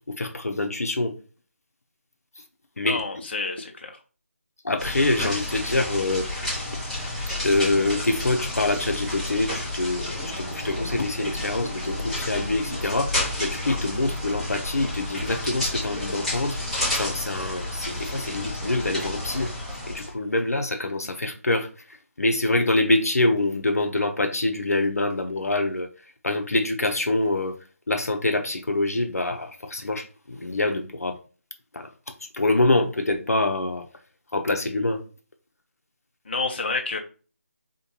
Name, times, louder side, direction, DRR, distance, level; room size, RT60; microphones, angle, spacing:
voice 1, 0.1-1.2 2.8-3.0 4.6-6.6 7.4-16.6 17.0-19.5 19.9-21.7 22.2-25.9 26.2-27.5 27.9-31.2 31.7-31.9 32.3-33.9 34.3-35.0, left 2 dB, 75° left, 0.8 m, -25 dB
voice 2, 2.8-4.0 36.2-37.0, left 3 dB, 40° left, 0.8 m, -29 dB
sound 1, 4.8-20.1, left 1 dB, 5° left, 0.8 m, -31 dB
5.0 x 2.3 x 2.9 m
figure-of-eight pair, 165°, 8 cm